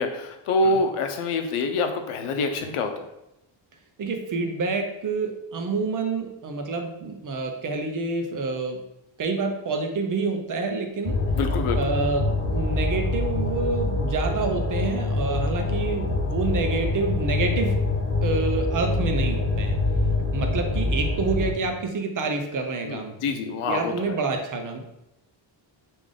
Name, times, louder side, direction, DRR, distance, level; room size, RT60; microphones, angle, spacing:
voice 1, 0.0-3.1 11.4-11.9 22.8-24.2, left 3 dB, 85° left, 6 dB, 0.6 m, -26 dB
voice 2, 4.0-8.8 9.2-11.2 11.8-17.8 18.2-19.8 20.3-23.1 23.7-24.8, right 3 dB, 40° right, 4 dB, 0.5 m, -28 dB
sound 1, 11.0-21.5, left 2 dB, 35° left, 0.5 m, -25 dB
3.3 x 2.5 x 3.6 m, 0.87 s
wide cardioid pair, 150°, 49 cm